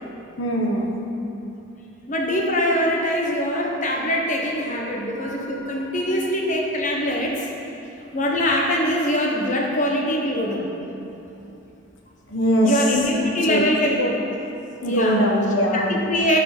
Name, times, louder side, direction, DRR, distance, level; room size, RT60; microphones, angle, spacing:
voice 1, 0.4-0.9 4.7-5.9 12.3-12.8 13.2-13.6 14.8-15.9, equal, 55° left, 0 dB, 1.2 m, -23 dB
voice 2, 2.1-7.5 8.1-10.7 12.6-14.1 14.9-15.2 15.6-16.4, equal, 35° left, -1 dB, 1.1 m, -23 dB
11.5 x 4.8 x 6.1 m, 2.9 s
head